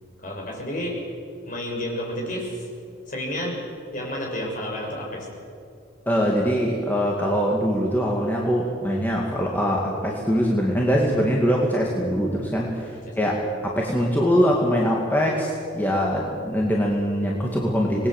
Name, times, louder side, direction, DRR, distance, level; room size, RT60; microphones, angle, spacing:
voice 1, 0.2-1.0 1.4-2.7 3.1-3.6 3.9-5.3 13.0-13.5, equal, 45° left, -1 dB, 6.2 m, -31 dB
voice 2, 6.1-18.1, equal, 10° left, -2 dB, 2.4 m, -23 dB
26.0 x 20.5 x 7.4 m, 2.4 s
head